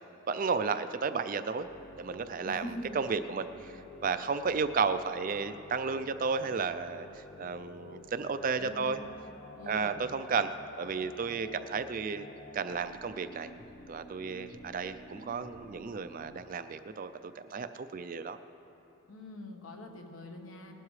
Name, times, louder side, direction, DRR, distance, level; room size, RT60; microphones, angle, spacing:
voice 1, 0.3-1.7 2.0-2.6 3.0-9.0 9.7-10.5 10.8-12.3 12.5-13.5 13.9-17.1 17.4-18.4, right 5 dB, 40° right, 11 dB, 0.3 m, -33 dB
sound 1, 1.6-16.4, left 1 dB, 35° left, 0.5 m, -51 dB
voice 2, 2.4-3.0 8.6-9.1 9.5-10.0 19.1-20.7, left 1 dB, 70° left, 3 dB, 1.2 m, -44 dB
19.0 x 12.0 x 3.2 m, 2.9 s
head